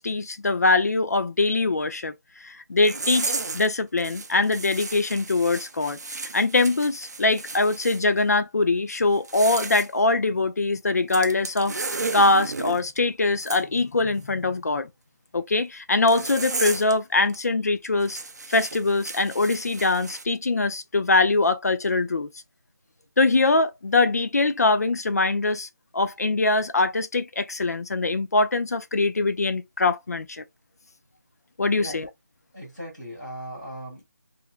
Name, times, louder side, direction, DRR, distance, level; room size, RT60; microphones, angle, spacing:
voice 1, 0.0-2.1 2.4-6.0 6.3-14.9 15.3-18.2 18.5-22.3 23.2-25.7 25.9-30.4 31.6-32.1, left 3 dB, 60° left, 0.5 m, -23 dB
sound 1, 2.8-3.7 4.0-8.0 9.1-9.9 11.1-12.8 13.4-13.6 16.1-16.9 17.3-17.4 18.0-20.2, right 3 dB, 60° right, 0.4 m, -33 dB
voice 2, 32.5-34.0, equal, ahead, 0.4 m, -38 dB
2.5 x 2.1 x 2.3 m
figure-of-eight pair, 175°, 10 cm